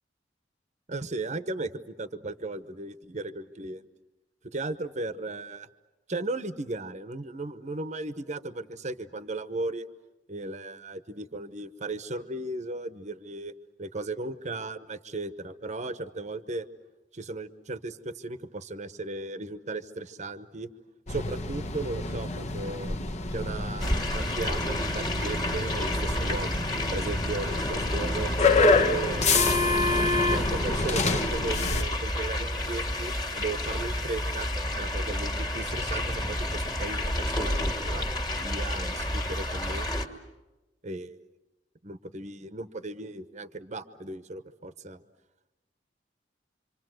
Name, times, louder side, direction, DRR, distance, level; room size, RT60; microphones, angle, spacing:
voice 1, 0.9-3.8 4.4-5.7 6.1-9.9 10.3-13.5 13.8-16.7 17.1-20.7 21.1-23.0 23.3-26.6 26.9-28.3 28.6-29.3 30.0-34.5 34.7-38.1 38.4-39.9 40.8-41.2 41.8-45.0, right 2 dB, 40° right, 11 dB, 1.0 m, -36 dB
sound 1, 21.1-31.8, left 3 dB, 40° left, 1.1 m, -27 dB
sound 2, 23.8-40.1, left 1 dB, 25° left, 2.1 m, -30 dB
26.5 x 26.5 x 7.8 m, 1.1 s
head